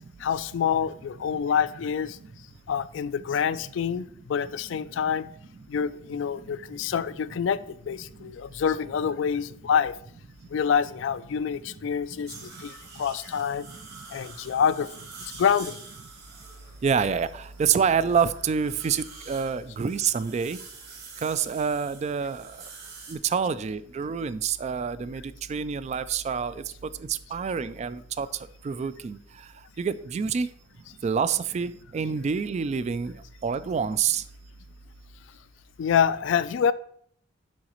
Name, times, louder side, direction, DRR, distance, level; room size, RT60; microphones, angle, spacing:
voice 1, 0.2-2.2 2.7-5.3 5.7-9.9 10.5-13.7 14.1-14.9 15.2-15.8 35.8-36.7, left 7 dB, 75° left, 14 dB, 0.3 m, -26 dB
sound 1, 12.3-23.1, right 4 dB, 60° right, 2.2 m, -46 dB
voice 2, 16.8-17.3 17.6-20.6 21.2-22.4 23.1-25.2 25.5-26.5 27.1-28.3 28.6-29.2 29.8-30.5 31.0-33.1 33.4-34.2, right 6 dB, 35° right, 14 dB, 0.3 m, -27 dB
10.5 x 4.8 x 3.0 m, 0.65 s
head